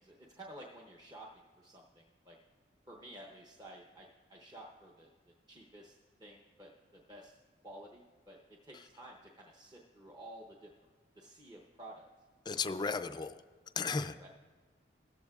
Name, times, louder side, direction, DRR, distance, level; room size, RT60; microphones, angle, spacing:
voice 1, 0.0-2.4 2.9-5.1 5.5-5.9 6.2-6.7 7.1-7.3 7.6-8.4 8.6-10.7 11.2-12.0 12.8-12.9 13.8-14.3, right 1 dB, 20° right, -1 dB, 0.8 m, -52 dB
voice 2, 12.5-13.4 13.8-14.3, left 4 dB, 25° left, 9 dB, 0.3 m, -35 dB
17.5 x 14.0 x 2.4 m, 1.5 s
head